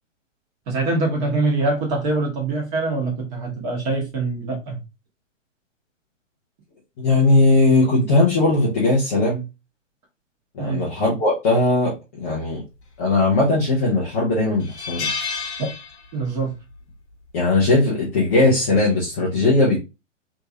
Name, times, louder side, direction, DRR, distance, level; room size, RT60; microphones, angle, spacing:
voice 1, 0.7-4.8 10.6-10.8 16.1-16.5, right 3 dB, 35° right, 0 dB, 1.3 m, -24 dB
voice 2, 7.0-9.4 10.5-12.6 13.0-15.1 17.3-19.8, left 2 dB, 10° left, -6 dB, 0.3 m, -19 dB
sound 1, 13.2-13.7 14.1-14.2 14.6-16.4 16.7-16.9 18.2-18.5, left 5 dB, 55° left, 0.9 m, -30 dB
2.9 x 2.6 x 2.7 m, 0.26 s
figure-of-eight pair, 120°, 39 cm